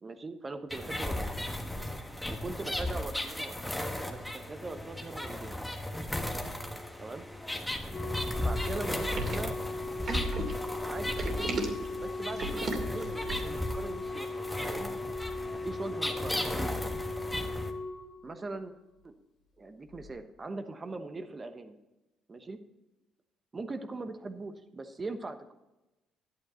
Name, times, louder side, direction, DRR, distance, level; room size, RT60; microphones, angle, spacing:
voice 1, 0.0-1.3 2.3-3.7 4.1-5.6 7.0-7.2 8.4-9.5 10.9-14.9 15.5-16.7 18.2-18.7 19.0-19.1 19.6-21.8 22.3-22.6 23.5-25.5, right 3 dB, 25° right, 8 dB, 1.1 m, -41 dB
sound 1, 0.7-17.7, left 1 dB, 5° left, 1.3 m, -36 dB
Organ, 7.9-18.8 19.9-20.1, left 3 dB, 50° left, 2.5 m, -38 dB
sound 2, 8.9-13.6, right 2 dB, 45° right, 2.4 m, -36 dB
10.5 x 9.1 x 4.4 m, 0.99 s
cardioid pair, 95°, 0 cm